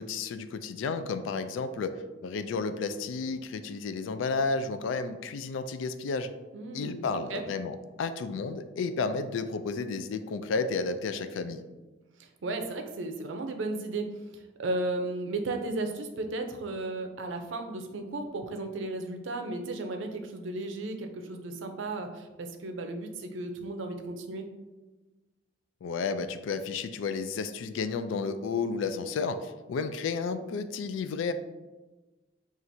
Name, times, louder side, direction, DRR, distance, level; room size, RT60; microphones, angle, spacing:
voice 1, 0.0-6.3 6.7-11.6 25.8-31.3, left 4 dB, 85° left, 10 dB, 0.3 m, -32 dB
voice 2, 6.5-7.0 7.3-7.4 12.2-24.5, right 2 dB, 80° right, 6 dB, 0.5 m, -35 dB
5.8 x 2.4 x 2.6 m, 1.2 s
head